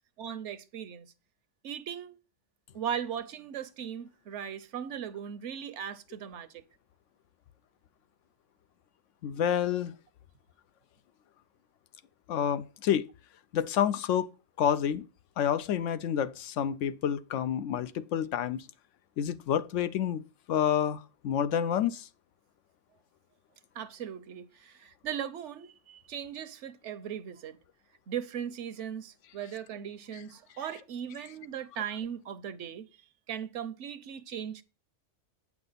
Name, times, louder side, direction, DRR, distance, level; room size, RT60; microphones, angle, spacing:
voice 1, 0.2-1.1 1.6-2.2 2.7-6.6 23.8-27.6 28.1-32.9 33.3-34.6, right 9 dB, 75° right, 1.0 m, -38 dB
voice 2, 9.2-9.9 12.3-13.0 13.5-14.3 14.6-15.0 15.4-18.6 19.2-20.2 20.5-22.1, left 9 dB, 85° left, 0.9 m, -28 dB
8.9 x 6.0 x 3.9 m
omnidirectional pair, 1.2 m